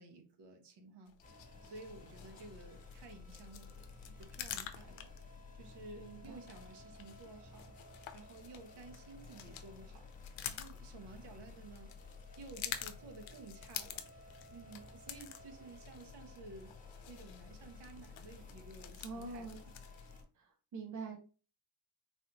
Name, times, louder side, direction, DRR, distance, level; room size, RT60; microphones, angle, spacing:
voice 1, 0.0-7.7 8.1-11.9 12.4-16.7 17.1-19.7, right 3 dB, 60° right, 3 dB, 1.1 m, -54 dB
sound 1, 1.1-20.2, left 10 dB, 80° left, 0.7 m, -49 dB
sound 2, 1.2-20.2, left 3 dB, 15° left, 1.2 m, -54 dB
voice 2, 6.0-6.4 19.0-19.6 20.4-21.2, right 4 dB, 40° right, 3 dB, 0.6 m, -45 dB
4.0 x 2.6 x 2.9 m, 0.37 s
cardioid pair, 150°, 46 cm